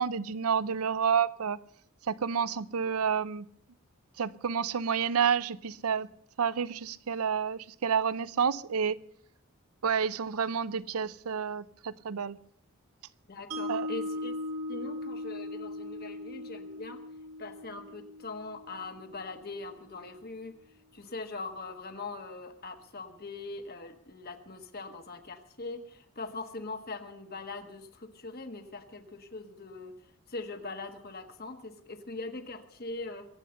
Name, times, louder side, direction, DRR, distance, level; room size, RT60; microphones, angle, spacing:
voice 1, 0.0-1.6 2.1-3.5 4.2-6.1 6.4-9.0 9.8-12.4 13.7-13.9, right 7 dB, 85° right, 0.6 m, -29 dB
voice 2, 13.3-14.4 14.7-17.0 17.4-20.6 20.9-30.0 30.3-33.2, left 3 dB, 45° left, 1.5 m, -41 dB
Mallet percussion, 13.5-19.7, left 1 dB, 65° right, 1.8 m, -39 dB
22.5 x 8.5 x 6.7 m
head